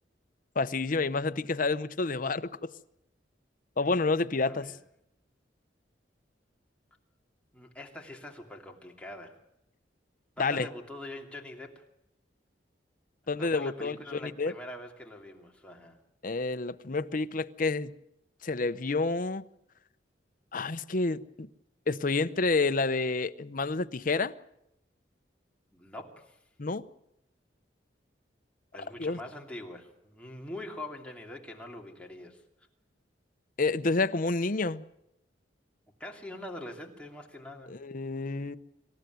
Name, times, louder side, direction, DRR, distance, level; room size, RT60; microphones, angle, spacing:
voice 1, 0.6-2.7 3.8-4.7 10.4-10.7 13.3-14.5 16.2-17.9 18.4-19.4 20.5-21.5 21.9-24.3 26.6-26.9 29.0-29.2 33.6-34.8 37.7-38.6, left 3 dB, 50° left, 0.8 m, -29 dB
voice 2, 4.4-4.8 7.5-9.4 10.4-11.8 13.4-16.0 25.7-26.4 28.7-32.4 36.0-37.7, left 1 dB, 5° left, 2.7 m, -44 dB
26.0 x 15.0 x 9.3 m
head